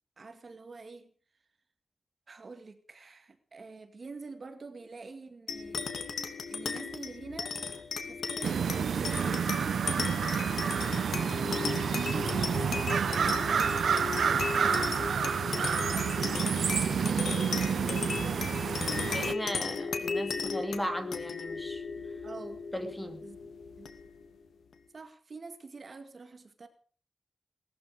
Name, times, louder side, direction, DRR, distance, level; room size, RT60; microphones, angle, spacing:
voice 1, 0.2-1.1 2.3-5.9 6.5-7.7 8.1-10.1 10.4-13.8 14.5-19.1 22.2-22.6 23.2-23.4 23.8-23.9 24.9-26.7, right 4 dB, 40° right, 7 dB, 2.2 m, -47 dB
sound 1, 5.5-24.3, left 5 dB, 90° left, 2.5 m, -36 dB
sound 2, 8.4-19.3, right 7 dB, 85° right, 0.8 m, -29 dB
voice 2, 19.1-21.8 22.7-23.2, equal, 10° left, 6 dB, 2.7 m, -37 dB
19.5 x 13.5 x 5.1 m, 0.43 s
wide cardioid pair, 150°, 0 cm